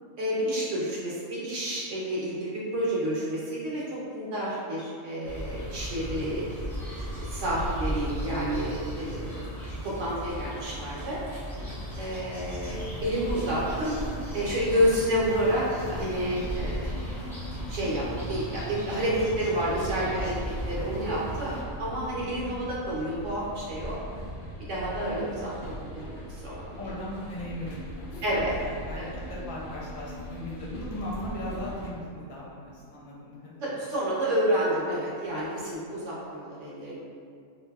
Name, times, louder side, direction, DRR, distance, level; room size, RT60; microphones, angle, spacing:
voice 1, 0.2-3.8 4.1-6.5 6.9-9.5 9.8-11.2 12.0-14.0 14.3-15.6 15.9-16.9 17.7-20.3 20.7-24.0 24.7-25.5 25.9-26.6 28.2-28.5 29.0-29.1 33.6-37.0, equal, 65° right, -6 dB, 0.9 m, -29 dB
sound 1, 5.2-21.6, equal, 5° left, 0.3 m, -36 dB
voice 2, 12.6-13.1 19.4-19.5 19.8-20.7 25.0-25.5 26.8-33.8, left 1 dB, 70° left, -6 dB, 1.0 m, -39 dB
sound 2, 12.7-31.9, equal, 90° left, 0.4 m, -41 dB
2.6 x 2.6 x 2.2 m, 2.2 s
omnidirectional pair, 1.5 m